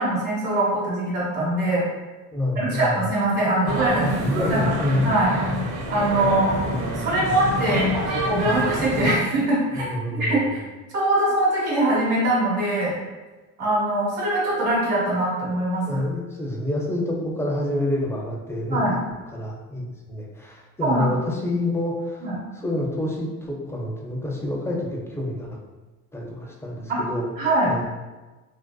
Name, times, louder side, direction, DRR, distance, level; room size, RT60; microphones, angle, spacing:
voice 1, 0.0-1.8 2.6-4.1 5.0-5.3 5.9-6.5 6.9-7.9 8.2-9.9 10.2-10.6 10.9-12.9 13.6-16.0 18.7-19.0 20.8-21.1 22.2-22.3 26.9-27.0 27.4-27.7, right 1 dB, 90° right, -6 dB, 1.0 m, -22 dB
voice 2, 2.3-3.1 3.9-5.1 9.7-10.6 15.8-19.0 19.3-25.5 26.1-27.3 27.6-27.9, left 1 dB, 5° left, -2 dB, 0.4 m, -28 dB
sound 1, 3.7-9.2, equal, 40° right, 0.7 m, -26 dB
2.6 x 2.1 x 2.2 m, 1.2 s
supercardioid pair, 80°, 40 cm